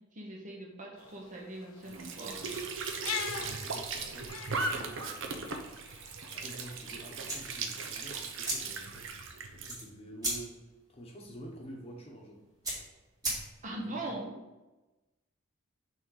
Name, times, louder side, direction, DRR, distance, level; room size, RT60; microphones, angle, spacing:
voice 1, 0.1-2.4 13.6-14.4, right 2 dB, 35° right, 0 dB, 1.0 m, -41 dB
sound 1, 1.0-6.7, left 7 dB, 75° left, 0.5 m, -43 dB
Squeak / Sink (filling or washing) / Trickle dribble, 1.8-9.7, right 4 dB, 60° right, 0.7 m, -38 dB
voice 2, 3.4-5.5 6.3-9.1 9.5-10.6 10.9-12.4 13.8-14.1, right 1 dB, 30° left, 0 dB, 1.0 m, -48 dB
sound 2, 7.3-13.9, right 1 dB, 15° right, 2.0 m, -40 dB
6.3 x 3.7 x 4.7 m, 1.1 s
head